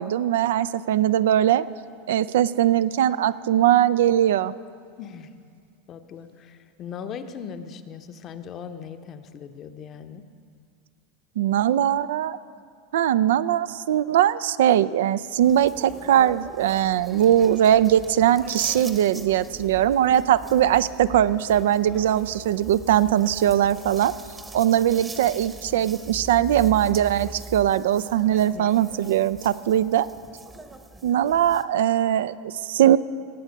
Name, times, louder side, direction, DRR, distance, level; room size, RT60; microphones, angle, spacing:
voice 1, 0.0-1.6 2.1-4.5 11.4-12.4 12.9-24.1 24.5-30.1 31.0-33.0, right 11 dB, 75° right, 15 dB, 0.3 m, -20 dB
voice 2, 5.0-5.3 5.9-10.2 28.3-28.8, left 7 dB, 40° left, 9 dB, 0.8 m, -39 dB
sound 1, 15.4-31.6, right 3 dB, 15° right, 0.9 m, -41 dB
19.0 x 8.0 x 5.2 m, 2.2 s
hypercardioid pair, 95°, 0 cm